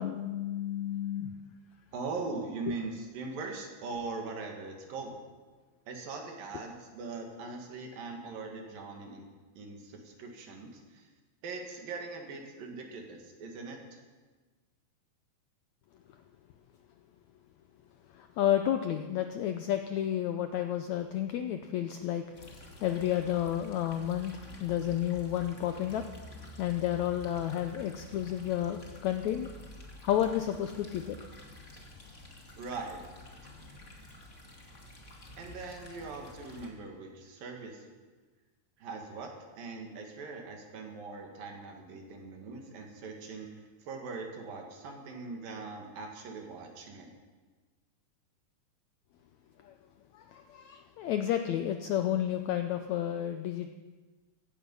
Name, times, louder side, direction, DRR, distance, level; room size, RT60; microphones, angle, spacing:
voice 1, 0.0-1.3 18.4-22.2 22.8-24.3 24.6-26.0 26.6-29.5 30.0-31.2 49.6-49.7 50.3-53.7, left 11 dB, 80° left, 7 dB, 1.6 m, -31 dB
voice 2, 1.9-5.2 5.9-9.3 9.5-11.1 11.4-14.0 32.6-33.0 33.4-33.5 35.4-37.9 38.8-43.5 43.8-47.1, right 3 dB, 75° right, 2 dB, 3.7 m, -41 dB
sound 1, 22.3-36.7, left 1 dB, 25° left, 2.1 m, -49 dB
16.0 x 16.0 x 5.5 m, 1.3 s
omnidirectional pair, 4.0 m